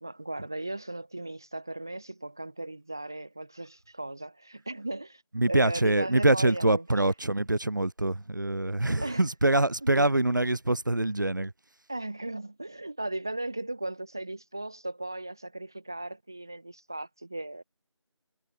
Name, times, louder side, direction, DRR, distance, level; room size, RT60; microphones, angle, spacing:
voice 1, 0.0-5.2 5.5-7.0 9.0-9.3 9.8-10.2 11.9-17.6, right 2 dB, 5° right, 1.1 m, -37 dB
voice 2, 5.3-11.5, right 2 dB, 40° right, 2.4 m, -25 dB
figure-of-eight pair, 175°, 16 cm